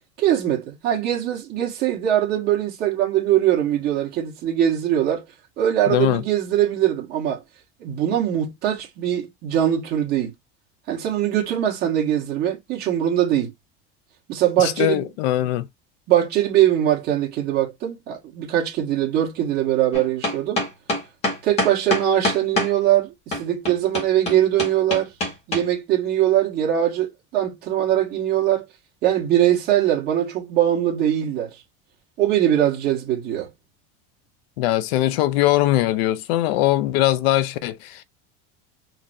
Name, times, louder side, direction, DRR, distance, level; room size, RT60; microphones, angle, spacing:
voice 1, 0.2-5.2 5.6-7.4 7.8-10.3 10.9-13.5 14.3-15.0 16.1-20.6 21.4-25.1 25.5-28.6 29.0-31.5 32.2-33.5, right 11 dB, 35° right, 1.4 m, -21 dB
voice 2, 5.9-6.2 14.6-15.7 34.6-38.0, left 14 dB, 85° left, 0.6 m, -21 dB
sound 1, 19.9-22.7 23.3-25.6, left 1 dB, 20° left, 1.1 m, -24 dB
3.9 x 3.0 x 2.7 m
cardioid pair, 180°, 30 cm